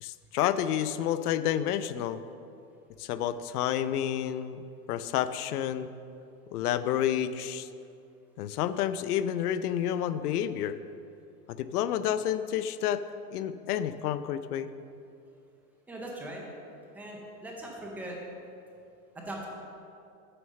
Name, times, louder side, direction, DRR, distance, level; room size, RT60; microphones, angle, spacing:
voice 1, 0.0-2.2 3.0-4.6 4.9-5.9 6.5-7.7 8.4-10.8 11.5-13.0 13.3-14.7, left 10 dB, 75° left, 13 dB, 0.6 m, -29 dB
voice 2, 15.9-16.4 16.9-18.2 19.1-19.5, right 1 dB, 5° right, -1 dB, 0.5 m, -40 dB
9.4 x 6.4 x 6.4 m, 2.6 s
supercardioid pair, 165°, 46 cm